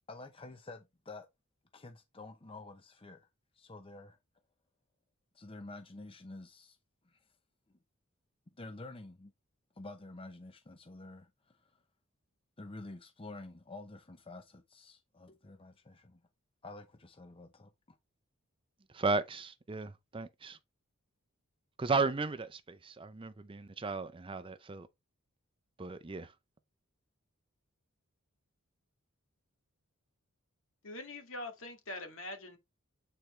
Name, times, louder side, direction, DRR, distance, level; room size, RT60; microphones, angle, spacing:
voice 1, 0.1-1.3 1.7-3.3 3.5-4.2 5.3-6.8 7.0-7.2 8.6-9.3 9.8-11.8 12.6-16.2 16.6-18.0, left 2 dB, 25° left, 0.7 m, -49 dB
voice 2, 18.9-20.6 21.8-24.9 25.8-26.3, right 4 dB, 25° right, 0.5 m, -35 dB
voice 3, 30.8-32.6, left 2 dB, 65° left, 2.1 m, -43 dB
8.5 x 4.4 x 3.2 m
head